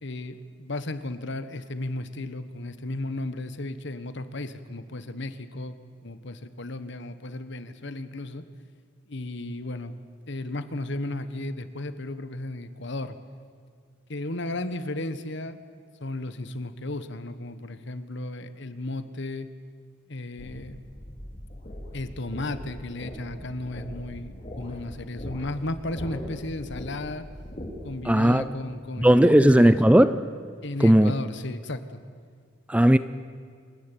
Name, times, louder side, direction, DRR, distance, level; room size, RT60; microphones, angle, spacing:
voice 1, 0.0-5.8 6.0-8.4 9.1-9.9 10.3-13.2 14.1-15.6 16.0-19.5 20.1-20.8 21.9-27.2 27.8-29.9 30.6-32.0, left 2 dB, 60° left, 12 dB, 1.3 m, -34 dB
sound 1, 20.4-28.1, equal, 35° left, 3.9 m, -40 dB
voice 2, 28.1-28.4 29.0-30.2 30.8-31.1 32.7-33.0, right 1 dB, 5° right, 13 dB, 0.5 m, -16 dB
26.5 x 15.0 x 9.1 m, 2.1 s
head